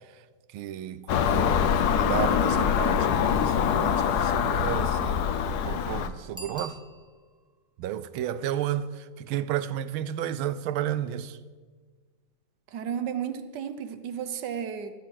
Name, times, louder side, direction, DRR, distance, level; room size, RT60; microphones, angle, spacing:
voice 1, 0.5-6.8 7.8-11.4, right 11 dB, 80° right, 1.4 m, -32 dB
Car passing by / Engine, 1.1-6.1, left 8 dB, 70° left, 1.0 m, -24 dB
Bicycle bell, 6.3-7.5 12.9-13.0, right 2 dB, 5° right, 0.5 m, -44 dB
voice 2, 12.7-14.9, right 8 dB, 65° right, 1.2 m, -33 dB
15.0 x 12.5 x 4.6 m
omnidirectional pair, 2.3 m